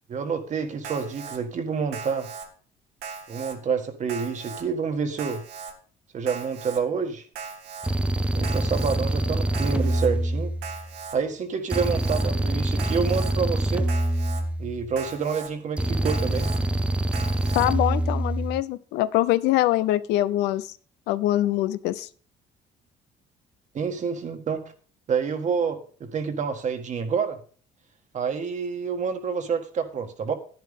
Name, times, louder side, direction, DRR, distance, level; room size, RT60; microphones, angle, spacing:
voice 1, 0.1-2.3 3.3-5.4 6.1-7.3 8.3-10.5 11.1-13.9 14.6-16.5 23.7-24.6 25.1-27.4 28.1-30.3, right 6 dB, 45° right, 1.7 m, -28 dB
Alarm, 0.8-1.4 1.9-2.5 3.0-3.5 4.1-4.6 5.2-5.7 6.3-6.8 7.3-7.9 8.4-9.0 9.5-10.1 10.6-11.1 11.7-12.2 12.8-13.3 13.9-14.4 15.0-15.5 16.0-16.6 17.1-17.7, right 6 dB, 75° right, 1.9 m, -38 dB
sound 1, 7.8-11.0 11.7-15.0 15.8-18.6, right 1 dB, 5° right, 0.5 m, -25 dB
voice 2, 17.5-20.7 21.1-22.1, left 15 dB, 90° left, 0.6 m, -23 dB
10.5 x 10.5 x 3.6 m
cardioid pair, 110°, 17 cm